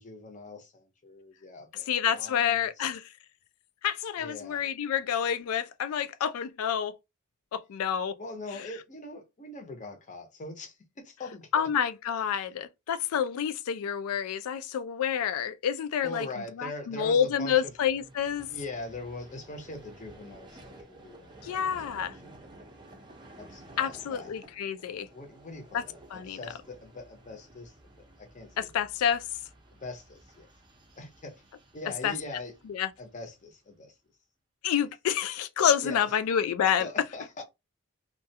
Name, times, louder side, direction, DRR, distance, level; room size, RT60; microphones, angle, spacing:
voice 1, 0.0-2.9 4.2-4.6 8.2-11.5 16.0-17.7 18.5-21.3 21.6-22.3 23.4-24.3 25.1-27.7 28.2-28.7 29.8-30.5 31.0-31.4 31.7-32.5 33.0-33.9 35.8-36.1 36.8-37.4, left 2 dB, 35° left, 0.6 m, -42 dB
voice 2, 1.9-3.1 3.8-7.0 7.5-8.2 11.5-16.3 16.6-18.5 21.4-22.1 23.8-25.1 25.7-25.8 26.1-26.4 28.6-29.2 32.0-32.1 32.7-32.9 34.6-36.9, left 8 dB, 85° left, 0.3 m, -28 dB
Vehicle, 17.2-33.5, right 1 dB, 20° right, 0.5 m, -53 dB
2.3 x 2.1 x 2.7 m
head